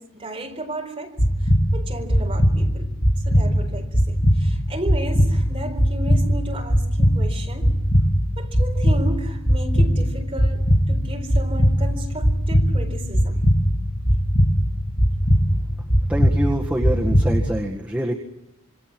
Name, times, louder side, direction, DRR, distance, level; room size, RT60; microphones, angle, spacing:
voice 1, 0.0-2.9 3.3-7.8 8.4-13.4, right 1 dB, 25° right, 4.3 m, -34 dB
sound 1, 1.2-17.5, equal, 55° left, 2.8 m, -20 dB
voice 2, 16.1-18.1, right 1 dB, 5° right, 1.8 m, -25 dB
27.0 x 24.5 x 6.2 m
head